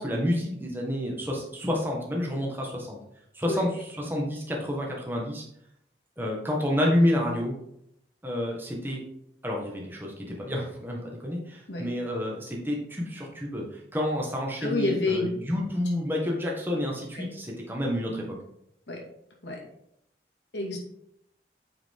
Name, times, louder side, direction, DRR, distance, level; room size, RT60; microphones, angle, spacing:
voice 1, 0.0-3.0 3.3-3.7 4.0-5.4 6.2-7.5 8.2-9.0 9.4-13.6 13.9-18.4, left 1 dB, 10° right, -1 dB, 1.6 m, -29 dB
voice 2, 14.6-15.3 17.1-17.3 18.9-19.0 19.4-19.6 20.5-20.8, left 2 dB, 85° left, -1 dB, 2.4 m, -28 dB
8.9 x 5.0 x 3.8 m, 0.76 s
head